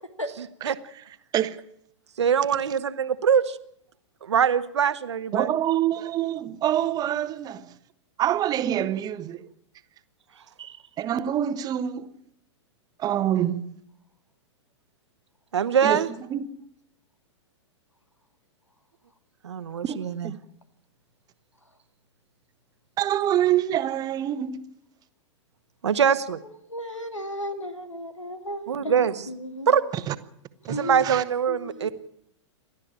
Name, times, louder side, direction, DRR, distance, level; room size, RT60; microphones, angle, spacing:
voice 1, 0.4-0.8 2.2-3.6 4.2-5.5 10.6-10.8 15.5-16.1 19.4-20.3 25.8-26.4 28.7-29.1 29.7-29.8 30.7-31.9, right 7 dB, 65° right, 1.5 m, -23 dB
voice 2, 1.3-1.7 5.3-7.7 8.2-9.4 11.0-12.1 13.0-13.7 15.8-16.0 16.3-16.5 19.8-20.0 20.2-20.4 23.0-24.6 30.1-30.2 30.6-31.2, right 11 dB, 25° right, 1.3 m, -26 dB
voice 3, 26.7-29.7 30.7-31.1 31.5-31.9, equal, 90° left, 2.5 m, -34 dB
29.0 x 12.5 x 8.9 m
figure-of-eight pair, 105°, 15 cm